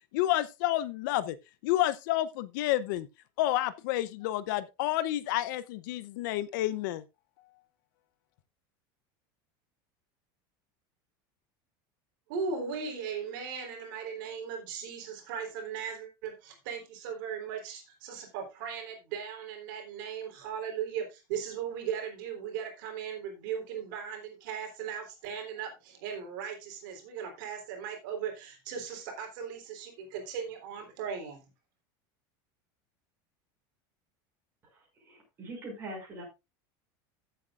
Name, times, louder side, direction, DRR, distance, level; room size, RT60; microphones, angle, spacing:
voice 1, 0.1-1.4 1.6-3.1 3.4-7.0, left 14 dB, 65° left, 0.7 m, -29 dB
voice 2, 12.3-31.4, right 7 dB, 65° right, 3.6 m, -38 dB
voice 3, 34.6-36.2, right 1 dB, 20° right, 5.9 m, -43 dB
15.5 x 7.9 x 2.5 m
cardioid pair, 180°, 11 cm